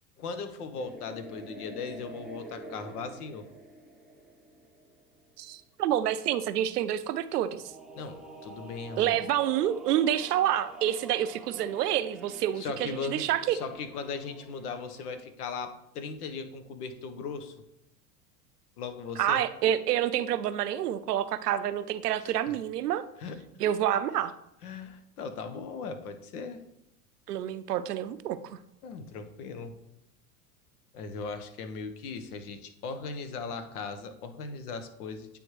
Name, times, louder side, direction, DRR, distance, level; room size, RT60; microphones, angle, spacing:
voice 1, 0.2-3.5 7.9-9.2 12.6-17.5 18.8-19.4 22.2-22.3 23.2-23.4 24.6-26.6 28.8-29.7 30.9-35.3, left 4 dB, 75° left, 8 dB, 1.0 m, -38 dB
sound 1, 0.8-5.3 7.4-15.2, right 2 dB, ahead, 0.7 m, -48 dB
voice 2, 5.4-7.6 9.0-13.6 19.2-23.0 23.6-24.3 27.3-28.6, right 11 dB, 90° right, 13 dB, 0.6 m, -28 dB
9.0 x 3.5 x 3.1 m, 0.82 s
hypercardioid pair, 95°, 45 cm